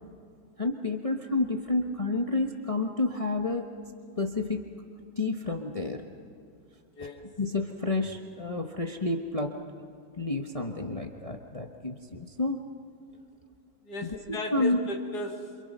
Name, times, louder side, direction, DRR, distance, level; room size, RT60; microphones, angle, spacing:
voice 1, 0.6-3.7 4.2-4.6 5.2-6.0 7.0-7.1 7.4-9.5 10.2-12.7 14.0-14.8, left 2 dB, 25° left, 3 dB, 1.1 m, -30 dB
voice 2, 13.8-15.6, equal, 80° left, 2 dB, 2.5 m, -35 dB
28.5 x 27.0 x 5.5 m, 2.4 s
omnidirectional pair, 1.7 m